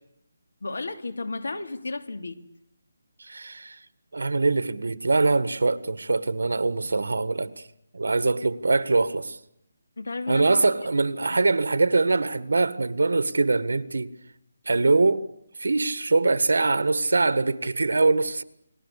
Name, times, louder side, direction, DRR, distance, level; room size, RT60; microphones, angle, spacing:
voice 1, 0.6-2.4 10.0-10.6 11.3-11.4, left 3 dB, 75° left, 2.8 m, -33 dB
voice 2, 3.2-3.8 4.1-7.5 7.9-9.4 10.3-14.1 14.7-15.2 15.6-18.4, right 3 dB, 80° right, 1.7 m, -23 dB
29.5 x 20.0 x 8.4 m
hypercardioid pair, 180°, 0 cm